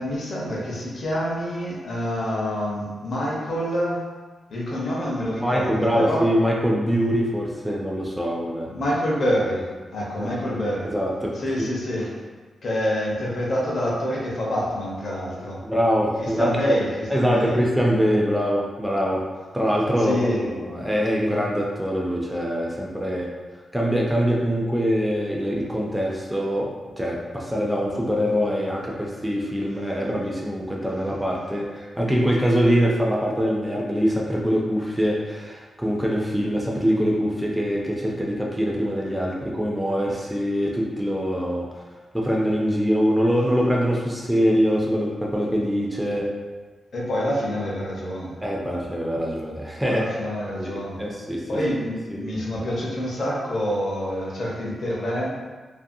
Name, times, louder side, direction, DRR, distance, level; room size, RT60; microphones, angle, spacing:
voice 1, 0.0-4.1 4.5-6.3 8.7-10.9 11.3-12.1 12.6-15.6 16.2-17.7 20.0-20.5 46.9-48.3 49.8-51.0 51.5-55.3, equal, 55° left, -5 dB, 0.7 m, -27 dB
voice 2, 5.4-8.7 10.2-10.6 10.8-11.7 15.6-16.7 17.1-19.2 19.5-23.3 23.5-26.7 27.0-41.7 42.1-46.3 48.4-50.1 50.6-50.7 51.0-51.4 52.1-52.2, equal, 5° right, -3 dB, 0.3 m, -23 dB
2.6 x 2.5 x 2.6 m, 1.3 s
wide cardioid pair, 175°, 0 cm